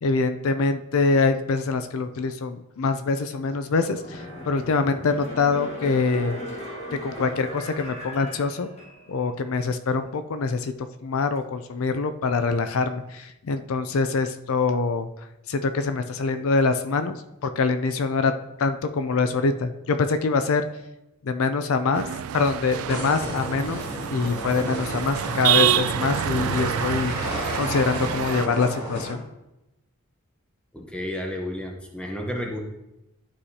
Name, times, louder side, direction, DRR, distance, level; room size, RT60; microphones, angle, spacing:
voice 1, 0.0-6.4 7.0-8.7 9.1-10.7 11.0-15.1 15.5-20.6 21.2-22.1 22.3-29.2, left 4 dB, 70° left, 10 dB, 0.4 m, -24 dB
sound 1, 3.7-9.3 9.6-9.7, equal, 30° left, 1.7 m, -37 dB
sound 2, 21.9-28.5, right 10 dB, 70° right, 0.3 m, -27 dB
sound 3, 22.7-29.1, equal, 50° left, 2.7 m, -33 dB
voice 2, 30.7-32.6, left 1 dB, 5° left, 1 dB, 0.8 m, -31 dB
11.0 x 4.9 x 2.8 m, 0.92 s
head